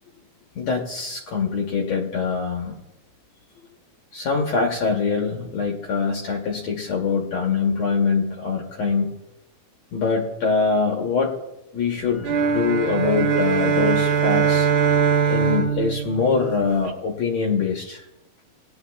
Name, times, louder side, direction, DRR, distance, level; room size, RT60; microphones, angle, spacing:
voice 1, 0.5-2.7 4.1-9.1 9.9-11.3 11.7-14.7 15.3-18.0, left 5 dB, 70° left, 0 dB, 1.7 m, -23 dB
sound 1, 12.2-16.9, right 7 dB, 70° right, 2.2 m, -21 dB
19.0 x 10.5 x 2.3 m, 0.93 s
omnidirectional pair, 4.4 m